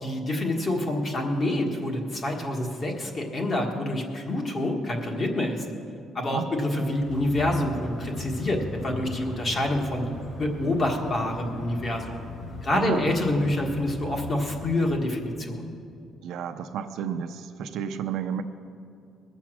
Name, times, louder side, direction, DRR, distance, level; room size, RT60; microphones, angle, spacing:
voice 1, 0.0-5.6 6.1-10.1 10.4-12.2 12.6-15.6, left 1 dB, 30° left, 1 dB, 1.5 m, -27 dB
sound 1, 6.9-14.7, left 2 dB, 45° left, 3.1 m, -39 dB
voice 2, 12.7-13.0 16.2-18.4, right 8 dB, 65° right, 7 dB, 0.6 m, -31 dB
21.0 x 7.2 x 6.1 m, 2.5 s
cardioid pair, 165°, 0 cm